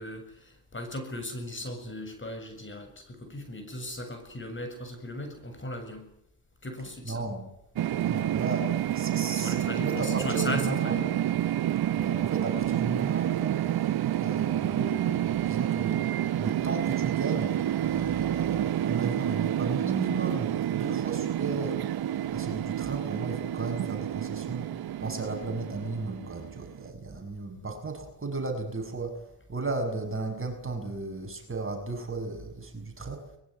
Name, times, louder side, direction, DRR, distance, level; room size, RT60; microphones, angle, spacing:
voice 1, 0.0-6.1 6.6-7.2 9.4-11.2, left 1 dB, 25° left, 7 dB, 7.5 m, -37 dB
voice 2, 7.1-7.5 8.0-11.0 11.9-13.6 14.2-16.0 16.4-21.8 22.3-24.7 25.0-33.3, right 3 dB, 30° right, 5 dB, 6.9 m, -35 dB
sound 1, 7.8-26.9, right 12 dB, 55° right, 1.0 m, -29 dB
22.5 x 22.0 x 9.6 m, 0.73 s
supercardioid pair, 65°, 45 cm